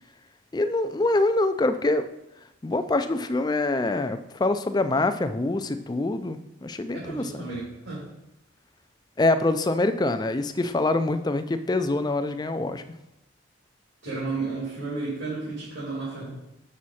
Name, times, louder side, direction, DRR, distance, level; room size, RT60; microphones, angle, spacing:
voice 1, 0.5-2.1 2.6-7.4 9.2-12.8, left 2 dB, 20° left, 10 dB, 0.4 m, -25 dB
voice 2, 6.9-8.0 14.0-16.3, right 3 dB, 75° right, -9 dB, 3.1 m, -32 dB
7.2 x 6.3 x 4.2 m, 0.88 s
head